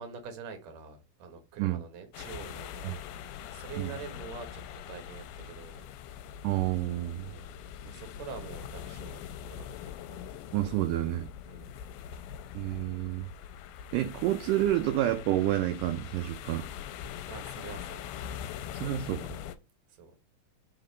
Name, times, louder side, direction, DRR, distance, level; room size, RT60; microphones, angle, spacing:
voice 1, 0.0-5.9 7.2-10.2 11.5-11.8 17.3-18.5 19.9-20.2, right 5 dB, 60° right, 2.3 m, -46 dB
sound 1, 2.1-19.6, left 9 dB, 90° left, 2.5 m, -42 dB
voice 2, 6.4-7.3 10.5-11.3 12.5-13.3 13.9-16.7 18.7-19.3, right 14 dB, 80° right, 2.0 m, -29 dB
5.4 x 3.9 x 5.0 m
omnidirectional pair, 4.3 m